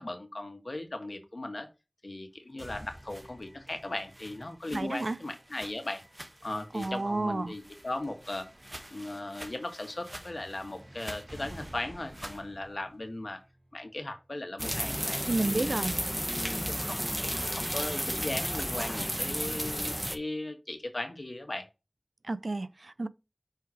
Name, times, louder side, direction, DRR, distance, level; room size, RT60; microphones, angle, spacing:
voice 1, 0.0-1.7 2.0-6.0 6.4-8.5 8.9-13.4 13.7-15.7 16.2-21.6, left 2 dB, 75° left, 1.5 m, -38 dB
sound 1, 2.6-14.5, right 1 dB, 50° right, 1.7 m, -52 dB
sound 2, 2.9-7.2 7.5-12.5, right 1 dB, 25° right, 1.3 m, -49 dB
voice 2, 4.7-5.2 6.7-7.5 15.3-16.0 22.2-23.1, right 2 dB, 80° right, 0.5 m, -31 dB
sound 3, 14.6-20.2, equal, 10° right, 1.0 m, -32 dB
5.7 x 4.6 x 4.7 m
wide cardioid pair, 45°, 0 cm